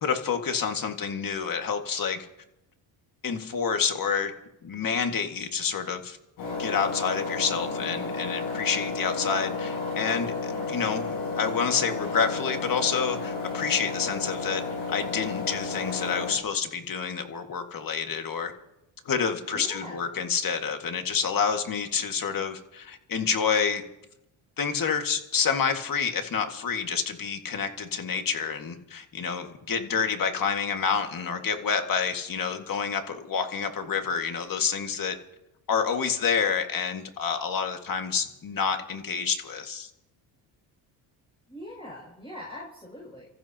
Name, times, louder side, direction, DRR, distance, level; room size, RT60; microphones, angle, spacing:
voice 1, 0.0-2.3 3.2-4.3 4.6-6.2 6.6-14.6 14.9-18.5 19.0-23.8 24.6-35.2 35.7-39.9, left 6 dB, 45° left, 5 dB, 2.0 m, -28 dB
Engine, 6.4-16.3, left 4 dB, 80° left, 8.0 m, -32 dB
voice 2, 19.5-20.1 41.5-43.3, left 1 dB, 10° left, -5 dB, 6.8 m, -42 dB
29.5 x 14.5 x 3.0 m, 0.88 s
cardioid pair, 80°, 47 cm